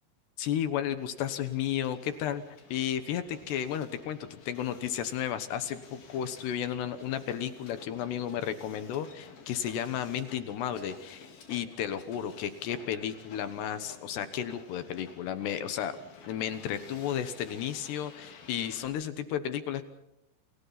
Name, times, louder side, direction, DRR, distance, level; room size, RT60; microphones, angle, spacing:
voice 1, 0.4-2.4 2.7-15.9 16.3-19.8, left 10 dB, 70° left, 11 dB, 3.1 m, -33 dB
Hiss, 1.0-18.9, left 5 dB, 55° left, 5.2 m, -52 dB
29.5 x 28.5 x 4.2 m, 0.85 s
omnidirectional pair, 5.4 m